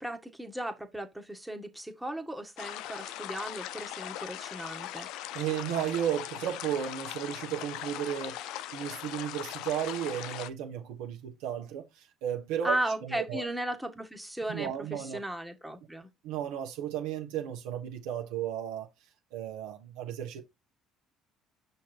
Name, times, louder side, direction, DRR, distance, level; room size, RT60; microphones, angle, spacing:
voice 1, 0.0-5.1 12.6-16.1, right 1 dB, 5° right, 1.7 m, -36 dB
sound 1, 2.6-10.5, left 13 dB, 75° left, 0.5 m, -40 dB
voice 2, 5.3-13.5 14.5-15.2 16.2-18.9 19.3-20.4, right 10 dB, 80° right, 1.4 m, -34 dB
5.9 x 4.0 x 4.4 m
supercardioid pair, 75°, 0 cm